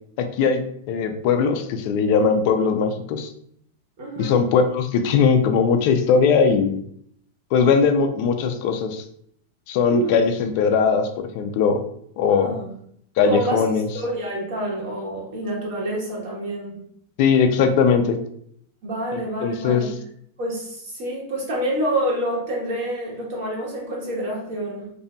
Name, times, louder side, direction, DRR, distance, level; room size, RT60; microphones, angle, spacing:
voice 1, 0.2-3.3 4.2-6.8 7.5-9.0 9.7-11.8 12.2-12.6 13.2-13.9 17.2-18.2 19.1-19.9, left 6 dB, 40° left, 6 dB, 0.3 m, -20 dB
voice 2, 4.0-4.4 9.8-10.2 12.2-12.7 13.2-16.8 18.8-19.9 20.4-24.9, right 1 dB, 45° right, -3 dB, 1.1 m, -27 dB
2.6 x 2.6 x 2.2 m, 0.67 s
supercardioid pair, 165°, 0 cm